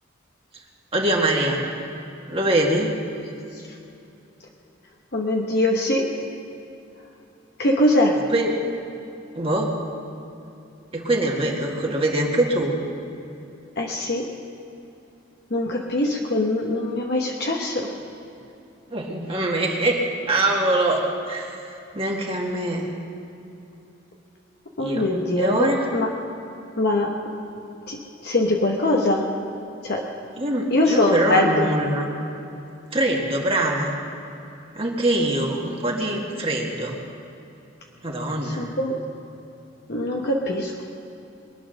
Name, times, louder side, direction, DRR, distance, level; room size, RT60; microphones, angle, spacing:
voice 1, 0.9-1.7 2.3-3.0 8.3-8.5 9.3-9.7 10.9-12.8 17.8-17.9 18.9-20.0 20.3-22.9 24.8-25.8 30.4-32.1 32.9-33.9 34.8-37.0 38.0-38.7, right 1 dB, 30° right, -1 dB, 1.9 m, -23 dB
voice 2, 5.1-6.1 7.6-8.1 13.8-14.3 15.5-17.9 24.8-26.1 26.8-27.1 27.9-28.0 28.2-29.3 29.8-30.0 30.7-31.7 38.4-39.0 39.9-40.8, left 1 dB, 55° left, -1 dB, 1.3 m, -22 dB
23.0 x 9.6 x 6.5 m, 2.9 s
head